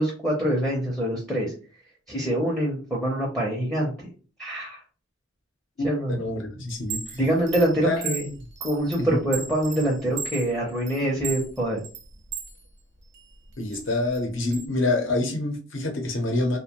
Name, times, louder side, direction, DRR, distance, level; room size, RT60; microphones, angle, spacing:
voice 1, 0.0-1.5 2.1-3.9 4.4-4.8 5.8-6.1 7.1-8.2 8.6-11.8, right 1 dB, ahead, -3 dB, 0.5 m, -25 dB
voice 2, 5.8-7.2 7.8-8.3 9.0-9.2 13.6-16.6, left 2 dB, 65° left, 3 dB, 0.7 m, -27 dB
Chime, 6.7-12.6 13.0-14.7, right 6 dB, 55° right, 0.4 m, -36 dB
2.5 x 2.1 x 2.8 m, 0.37 s
head